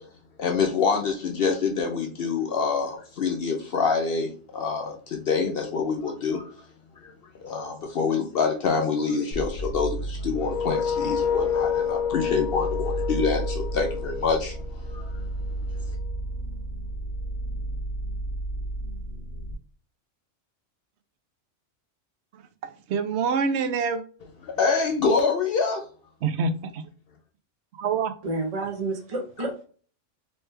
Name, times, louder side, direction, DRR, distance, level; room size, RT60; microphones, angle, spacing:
voice 1, 0.4-6.4 7.4-14.6 14.9-15.1 24.4-25.8, left 5 dB, 60° left, 0.7 m, -26 dB
sound 1, 9.3-19.5, right 1 dB, 85° right, 1.2 m, -33 dB
sound 2, 10.4-15.2, left 7 dB, 85° left, 1.0 m, -29 dB
voice 2, 22.6-24.0 26.2-26.8 27.8-28.1, right 5 dB, 70° right, 0.8 m, -26 dB
voice 3, 28.2-29.6, right 2 dB, 35° right, 0.7 m, -30 dB
3.1 x 3.1 x 3.2 m
omnidirectional pair, 1.3 m